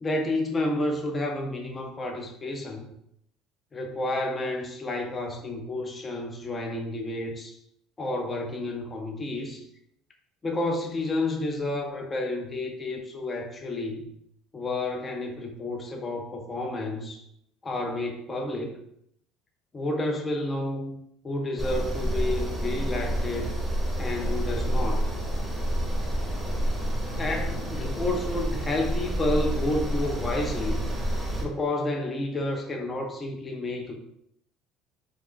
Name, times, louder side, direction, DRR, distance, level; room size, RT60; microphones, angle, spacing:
voice 1, 0.0-2.9 3.7-7.6 8.0-9.6 10.4-14.1 14.5-17.2 17.6-18.7 19.7-23.5 24.0-25.0 27.1-30.8 31.4-34.0, left 2 dB, 25° left, 1 dB, 0.4 m, -30 dB
sound 1, 21.6-31.5, right 1 dB, 5° right, 0.7 m, -28 dB
2.4 x 2.3 x 3.5 m, 0.75 s
cardioid pair, 115°, 0 cm